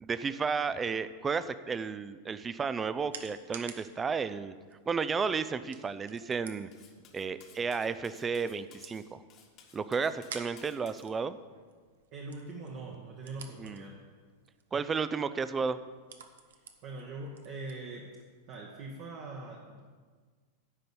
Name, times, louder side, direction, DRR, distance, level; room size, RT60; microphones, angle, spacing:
voice 1, 0.0-4.5 4.9-6.7 7.1-9.2 9.7-11.4 13.6-13.8 14.7-15.8, right 5 dB, 20° right, 14 dB, 0.5 m, -32 dB
sound 1, 2.3-18.7, right 6 dB, 65° right, 0.9 m, -53 dB
Cutlery silverware, 6.7-11.1, left 7 dB, 40° left, 1.4 m, -58 dB
voice 2, 12.1-14.0 16.5-18.2 18.5-19.8, right 2 dB, 45° right, -1 dB, 1.3 m, -42 dB
9.9 x 5.3 x 8.1 m, 1.5 s
figure-of-eight pair, 90°, 0 cm